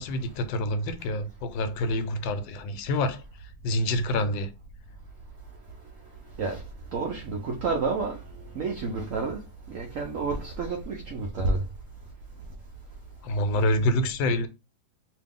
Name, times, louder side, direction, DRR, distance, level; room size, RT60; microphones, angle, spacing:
voice 1, 0.0-4.5 13.2-14.5, left 1 dB, 85° left, 1.3 m, -27 dB
voice 2, 6.9-9.4 9.7-11.6 13.6-13.7, right 3 dB, 70° right, 0.7 m, -30 dB
2.9 x 2.6 x 3.5 m
omnidirectional pair, 2.0 m